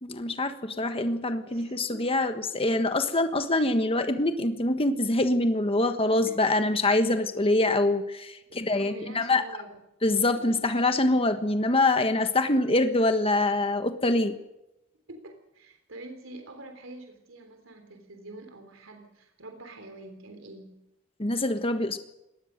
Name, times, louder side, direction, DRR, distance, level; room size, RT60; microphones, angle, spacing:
voice 1, 0.0-9.4 10.0-14.4 21.2-22.0, left 2 dB, 30° left, 8 dB, 1.4 m, -25 dB
voice 2, 1.4-2.1 6.3-6.5 8.5-9.7 10.3-10.4 15.1-20.9, right 2 dB, 90° right, 5 dB, 3.5 m, -46 dB
23.0 x 19.0 x 6.7 m, 0.90 s
head